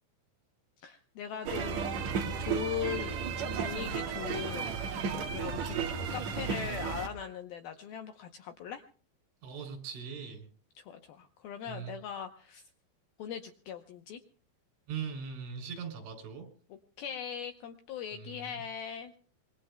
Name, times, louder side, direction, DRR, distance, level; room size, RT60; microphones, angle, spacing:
voice 1, 0.8-1.9 2.4-3.3 3.5-4.7 5.3-5.8 6.1-8.8 10.8-12.6 13.2-14.2 16.7-19.1, left 8 dB, 80° left, 6 dB, 2.2 m, -40 dB
sound 1, 1.4-7.1, right 6 dB, 60° right, 1.9 m, -34 dB
voice 2, 9.4-10.5 11.7-11.9 14.9-16.5 18.1-18.6, right 6 dB, 85° right, 4 dB, 5.5 m, -40 dB
25.5 x 22.0 x 2.2 m, 0.41 s
omnidirectional pair, 5.3 m